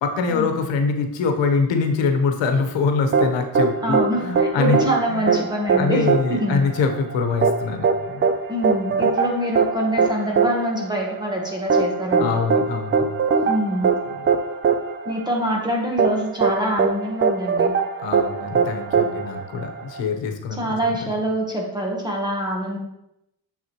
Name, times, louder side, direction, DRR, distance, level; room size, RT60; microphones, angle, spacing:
voice 1, 0.0-4.8 5.1-5.4 5.8-8.3 8.9-9.0 12.2-13.0 18.0-21.1, left 4 dB, 85° left, 5 dB, 1.1 m, -24 dB
sound 1, 3.1-20.0, right 5 dB, 30° right, 0.4 m, -21 dB
voice 2, 3.8-6.6 8.5-12.3 13.4-13.9 15.0-17.7 20.6-22.8, equal, 10° right, -1 dB, 1.1 m, -25 dB
6.9 x 5.9 x 3.0 m, 0.84 s
cardioid pair, 160°, 43 cm